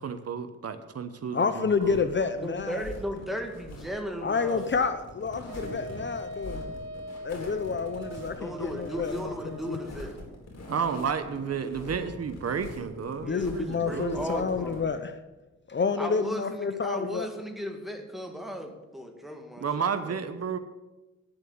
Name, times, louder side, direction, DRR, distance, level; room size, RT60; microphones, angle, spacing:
voice 1, 0.0-2.0 10.7-14.2 19.6-20.6, right 6 dB, 55° right, 10 dB, 1.0 m, -32 dB
voice 2, 1.3-2.8 4.2-6.6 7.2-9.8 13.2-15.1 15.7-17.3, left 5 dB, 40° left, 10 dB, 0.8 m, -29 dB
sound 1, 1.7-14.8, left 1 dB, 60° left, 4.2 m, -44 dB
voice 3, 2.4-4.7 8.4-10.2 13.2-14.9 16.0-20.6, equal, ahead, 3 dB, 1.9 m, -36 dB
Wind instrument woodwind instrument, 5.5-9.9, equal, 70° right, 1.4 m, -41 dB
10.5 x 7.7 x 8.5 m, 1.1 s
cardioid pair, 100°, 29 cm